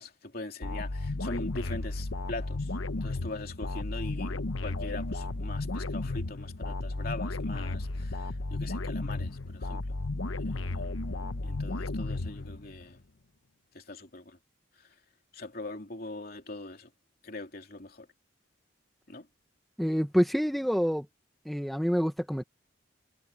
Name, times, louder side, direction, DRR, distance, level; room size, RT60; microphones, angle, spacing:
voice 1, 0.0-9.9 10.4-13.0 13.7-14.4 14.8-14.9 15.3-16.9 17.2-18.1 19.1-19.3, left 2 dB, 50° left, 3.3 m, -42 dB
sound 1, 0.6-12.9, left 2 dB, 85° left, 1.1 m, -34 dB
voice 2, 19.8-21.0 21.4-22.4, equal, ahead, 1.4 m, -27 dB
head